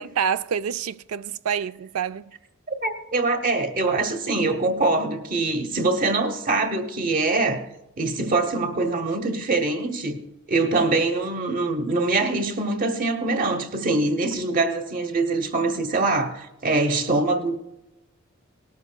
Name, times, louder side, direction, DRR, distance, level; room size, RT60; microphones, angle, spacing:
voice 1, 0.0-2.3, right 7 dB, 85° right, 0.4 m, -27 dB
voice 2, 2.8-7.7 8.0-10.2 10.5-17.6, right 3 dB, 40° right, 1.0 m, -23 dB
19.0 x 13.0 x 2.3 m
head